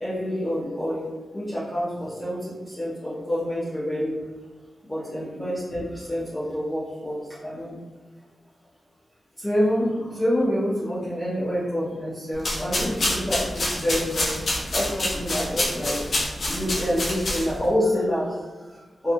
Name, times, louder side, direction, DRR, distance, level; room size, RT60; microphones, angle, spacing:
voice 1, 0.0-4.3 4.8-7.8 9.4-14.3 14.7-16.2 16.5-19.1, equal, 15° left, -10 dB, 0.7 m, -27 dB
sound 1, 12.3-17.7, left 1 dB, 55° left, 0.7 m, -27 dB
2.9 x 2.3 x 2.5 m, 1.3 s
cardioid pair, 80°, 0 cm